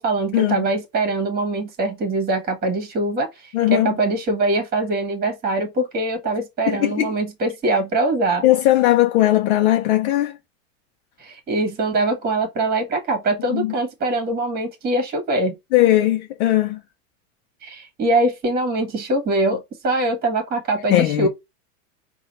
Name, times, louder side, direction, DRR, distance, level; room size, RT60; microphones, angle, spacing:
voice 1, 0.0-8.4 11.2-15.6 17.6-21.3, right 2 dB, 20° right, 1.6 m, -23 dB
voice 2, 3.5-3.9 6.7-7.1 8.4-10.4 13.5-13.7 15.7-16.8 20.9-21.3, left 14 dB, 55° left, 0.8 m, -18 dB
4.8 x 2.5 x 4.2 m
supercardioid pair, 135°, 41 cm